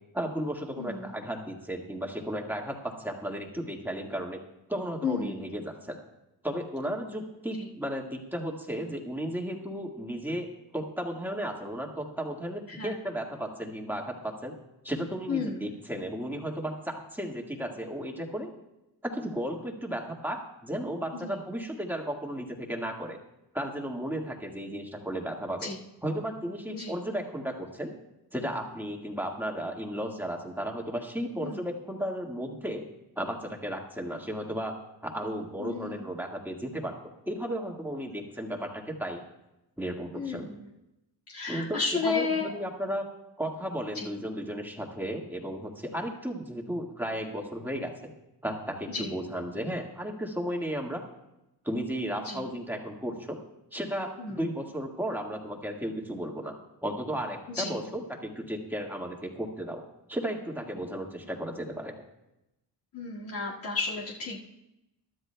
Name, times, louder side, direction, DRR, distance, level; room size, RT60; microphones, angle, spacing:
voice 1, 0.1-4.4 4.7-6.0 6.4-10.5 10.7-14.5 14.8-18.5 19.0-23.2 23.5-25.7 26.0-27.9 28.3-32.9 33.2-34.8 35.0-37.0 37.3-39.2 39.8-40.5 41.5-43.1 43.4-47.9 48.4-51.0 51.6-53.4 53.7-56.5 56.8-59.8 60.1-61.9, equal, 5° right, 0 dB, 1.7 m, -34 dB
voice 2, 0.8-1.1 5.0-5.4 7.5-7.7 12.7-12.9 15.3-15.7 21.1-21.4 25.6-25.8 26.7-27.0 31.4-31.6 35.6-36.0 40.1-40.7 41.3-42.6 43.9-44.1 48.9-49.3 52.2-52.5 54.2-54.4 57.5-57.8 62.9-64.5, left 4 dB, 55° left, -5 dB, 2.1 m, -33 dB
22.5 x 12.5 x 2.3 m, 0.93 s
cardioid pair, 115°, 43 cm